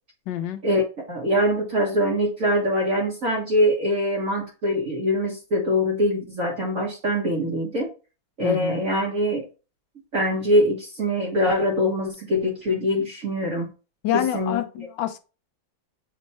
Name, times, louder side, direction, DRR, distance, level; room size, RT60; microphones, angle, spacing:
voice 1, 0.3-0.6 8.4-8.8 14.0-15.2, left 11 dB, 70° left, 1.3 m, -27 dB
voice 2, 1.1-7.9 8.4-9.4 10.1-13.7 14.1-14.6, equal, 45° right, 1.6 m, -23 dB
7.4 x 3.0 x 4.2 m
omnidirectional pair, 2.2 m